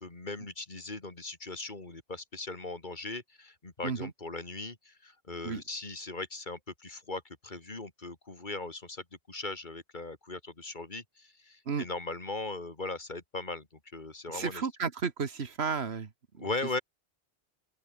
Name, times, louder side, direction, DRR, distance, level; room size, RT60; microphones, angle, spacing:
voice 1, 0.0-13.7 13.9-14.6 16.4-16.8, left 3 dB, 40° left, 2.7 m, -39 dB
voice 2, 14.3-16.5, right 5 dB, 65° right, 1.7 m, -33 dB
open air
omnidirectional pair, 1.2 m